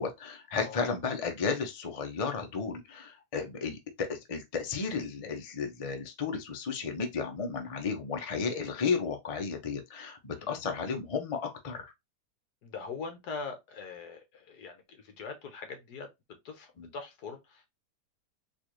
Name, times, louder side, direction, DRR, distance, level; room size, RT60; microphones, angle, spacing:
voice 1, 0.0-11.9 16.8-16.9, left 5 dB, 55° left, 0.4 m, -33 dB
voice 2, 10.3-10.6 12.6-16.1 16.4-17.7, left 4 dB, 70° left, 1.5 m, -42 dB
4.1 x 2.6 x 3.0 m
omnidirectional pair, 1.8 m